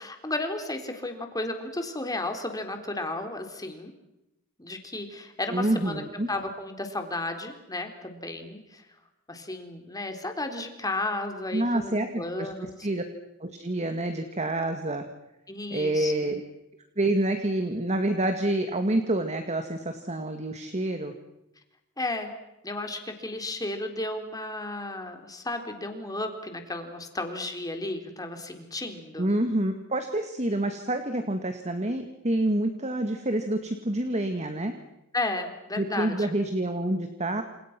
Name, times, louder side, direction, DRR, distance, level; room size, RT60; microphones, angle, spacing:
voice 1, 0.0-3.9 4.6-6.0 6.3-8.8 9.3-12.7 15.5-16.1 22.0-22.3 22.6-29.3 35.1-36.3, left 2 dB, 15° left, 5 dB, 3.9 m, -33 dB
voice 2, 5.5-6.3 11.5-12.5 12.8-13.0 13.4-15.0 15.7-16.4 17.0-21.1 29.2-34.7 35.8-37.4, right 1 dB, 30° right, 7 dB, 2.1 m, -27 dB
29.5 x 28.0 x 6.2 m, 0.90 s
head